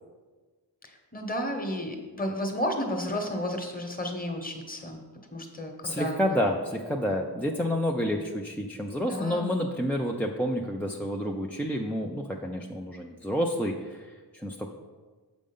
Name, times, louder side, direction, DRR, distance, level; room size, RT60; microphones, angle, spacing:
voice 1, 0.8-5.0 5.3-6.2 9.0-9.5, equal, 20° left, 3 dB, 1.1 m, -32 dB
voice 2, 5.8-14.7, equal, 5° left, -1 dB, 0.4 m, -29 dB
7.6 x 5.1 x 5.4 m, 1.4 s
wide cardioid pair, 120°, 43 cm